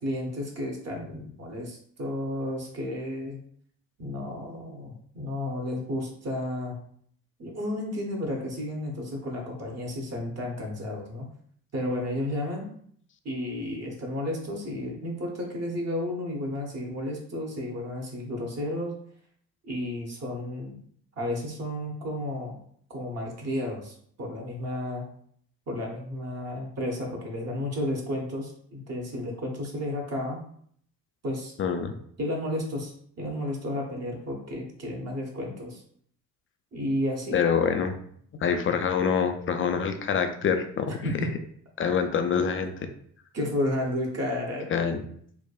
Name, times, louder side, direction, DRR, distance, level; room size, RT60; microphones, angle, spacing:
voice 1, 0.0-3.4 4.0-6.8 7.4-11.3 11.7-12.7 13.2-19.0 19.6-20.8 21.2-22.6 22.9-25.0 25.7-30.4 31.2-31.5 32.2-35.8 36.7-37.4 41.0-41.3 41.8-41.9 43.3-44.7, left 1 dB, 40° right, -1 dB, 0.9 m, -32 dB
voice 2, 31.6-31.9 37.3-37.9 38.4-40.9 41.8-42.7 44.7-45.0, left 6 dB, 30° left, 7 dB, 0.4 m, -25 dB
3.4 x 2.1 x 2.3 m, 0.63 s
hypercardioid pair, 55°, 41 cm